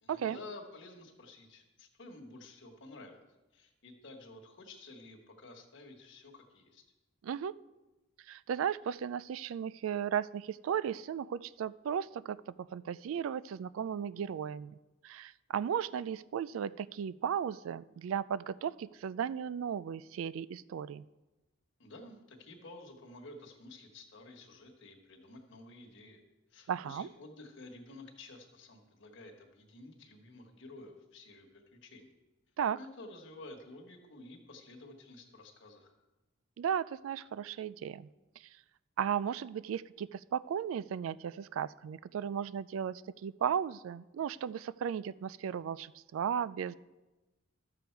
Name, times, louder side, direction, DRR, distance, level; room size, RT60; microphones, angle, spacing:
voice 1, 0.0-3.2 3.5-6.8 21.8-26.2 26.5-32.1 32.8-35.9, left 2 dB, 65° left, 2 dB, 1.5 m, -51 dB
voice 2, 7.2-7.5 8.3-14.8 15.0-21.0 26.7-27.1 32.6-32.8 36.6-38.1 39.0-46.7, right 8 dB, 80° right, 19 dB, 0.3 m, -35 dB
12.5 x 6.9 x 4.6 m, 1.1 s
head